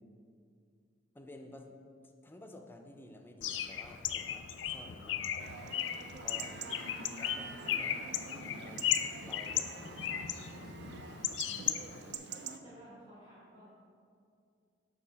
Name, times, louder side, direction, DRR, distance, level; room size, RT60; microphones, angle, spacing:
voice 1, 1.1-1.7 2.2-5.3 6.2-6.9 7.2-8.0 8.3-8.9 9.2-10.3, left 1 dB, 10° left, 4 dB, 0.4 m, -52 dB
Bird, 3.4-12.2, left 10 dB, 80° left, 0.3 m, -36 dB
Chatter / Livestock farm animals working animals / Chirp tweet, 5.4-12.6, right 6 dB, 65° right, 0.3 m, -47 dB
voice 2, 6.7-7.4 11.8-11.9 12.3-13.7, left 1 dB, 25° right, -8 dB, 1.0 m, -54 dB
6.6 x 2.8 x 5.6 m, 2.3 s
head